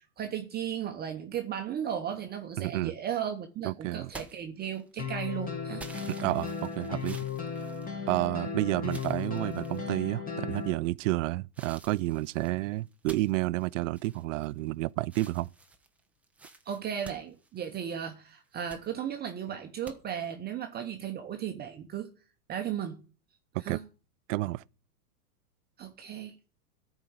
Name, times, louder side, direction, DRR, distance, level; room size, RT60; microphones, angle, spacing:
voice 1, 0.0-5.8 16.7-22.1 22.5-23.0 23.6-23.8 25.8-26.4, right 9 dB, 20° right, 0.9 m, -35 dB
voice 2, 2.6-2.9 3.6-4.1 6.1-7.2 8.1-15.5 23.5-23.8 24.3-24.6, right 18 dB, 55° right, 0.5 m, -30 dB
sound 1, 4.1-5.1 5.8-8.4 8.8-9.9 10.5-11.0 11.5-14.7 15.0-18.0 18.4-18.9 19.8-20.0, right 2 dB, 5° right, 0.5 m, -50 dB
sound 2, 5.0-10.7, left 6 dB, 20° left, 1.6 m, -36 dB
13.5 x 4.6 x 8.1 m
hypercardioid pair, 120°, 47 cm